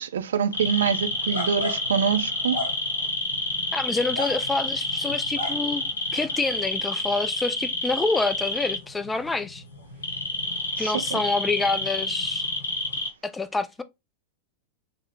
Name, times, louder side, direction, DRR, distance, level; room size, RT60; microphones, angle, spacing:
voice 1, 0.0-2.6 10.8-11.2, right 7 dB, 65° right, 0.4 m, -25 dB
sound 1, 0.5-13.1, left 2 dB, 70° left, 0.9 m, -28 dB
voice 2, 3.7-9.6 10.8-12.5 13.2-13.8, left 3 dB, 10° left, 0.3 m, -27 dB
3.6 x 2.0 x 3.4 m
figure-of-eight pair, 90°, 0 cm